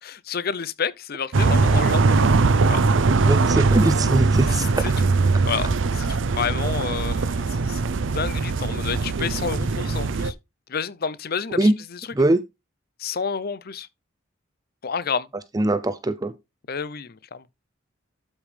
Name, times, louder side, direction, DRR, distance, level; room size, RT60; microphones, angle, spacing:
voice 1, 0.0-2.3 2.7-2.8 4.5-5.1 5.5-10.3 10.7-12.1 13.0-13.9 14.8-15.3 16.7-17.4, left 6 dB, 50° left, 0.6 m, -30 dB
sound 1, 1.3-10.3, right 3 dB, 70° right, 0.6 m, -21 dB
voice 2, 3.3-4.7 11.6-11.7 12.2-12.4 15.5-16.3, right 1 dB, 20° right, 0.5 m, -21 dB
12.5 x 5.2 x 3.3 m
head